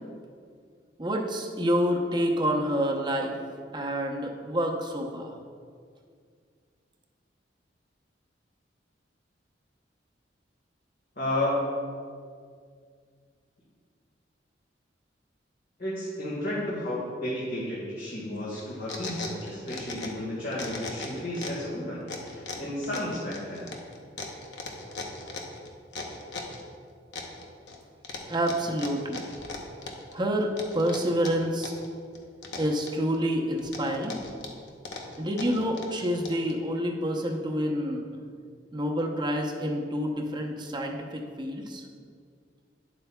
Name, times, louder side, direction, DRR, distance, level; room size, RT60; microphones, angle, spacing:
voice 1, 1.0-3.3 3.7-5.3 28.3-29.2 30.1-31.7 32.6-34.2 35.2-38.1 38.7-41.8, equal, 25° right, 1 dB, 0.8 m, -28 dB
voice 2, 11.1-11.7 15.8-23.7, left 1 dB, 50° left, -8 dB, 1.6 m, -32 dB
sound 1, 18.5-20.2 20.5-21.7 22.1-26.6 27.1-27.8 28.0-30.1 30.6-31.9 32.1-33.2 33.6-36.5, left 3 dB, 65° left, 0.9 m, -38 dB
10.0 x 7.9 x 2.3 m, 2.1 s
head